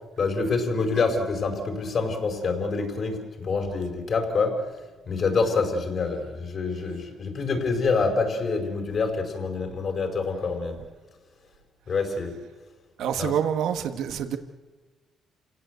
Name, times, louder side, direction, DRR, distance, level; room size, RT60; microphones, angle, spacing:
voice 1, 0.2-4.6 5.1-10.8 11.9-12.4 13.2-13.4, left 4 dB, 50° left, 5 dB, 5.0 m, -26 dB
voice 2, 13.0-14.4, right 8 dB, 80° right, 8 dB, 1.4 m, -26 dB
28.0 x 17.5 x 8.1 m, 1.2 s
cardioid pair, 90°, 0 cm